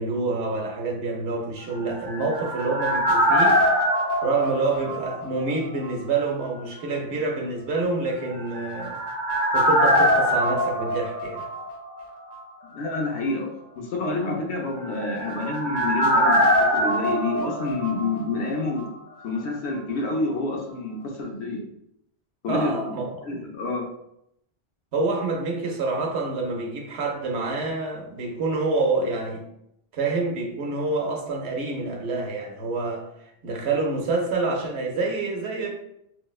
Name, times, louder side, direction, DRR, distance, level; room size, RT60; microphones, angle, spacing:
voice 1, 0.0-3.6 4.2-9.0 9.5-11.5 22.5-23.0 23.3-23.4 24.9-29.4 29.9-35.7, right 3 dB, 85° right, 1 dB, 1.0 m, -27 dB
sound 1, 1.7-5.6 5.8-5.9 8.3-12.1 12.3-12.4 14.7-18.5 18.8-18.9, equal, 25° right, 0.7 m, -23 dB
voice 2, 12.6-18.9 19.2-21.6 22.4-22.7 23.2-23.9, left 2 dB, 85° left, 0 dB, 1.0 m, -28 dB
4.4 x 2.1 x 2.3 m, 0.78 s
omnidirectional pair, 1.1 m